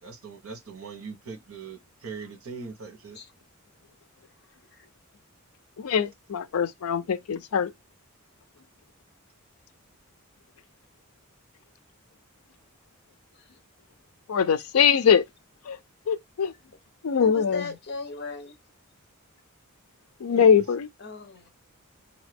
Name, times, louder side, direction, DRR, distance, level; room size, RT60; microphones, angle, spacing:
voice 1, 0.0-3.2 20.2-20.5, right 5 dB, 75° right, 1.2 m, -41 dB
voice 2, 5.8-7.7 14.3-15.2 15.7-15.8 16.1-16.5 17.0-17.7 20.2-20.9, left 7 dB, 80° left, 0.5 m, -22 dB
voice 3, 17.2-18.6 21.0-21.5, left 3 dB, 50° left, 0.9 m, -37 dB
4.1 x 2.8 x 3.4 m
head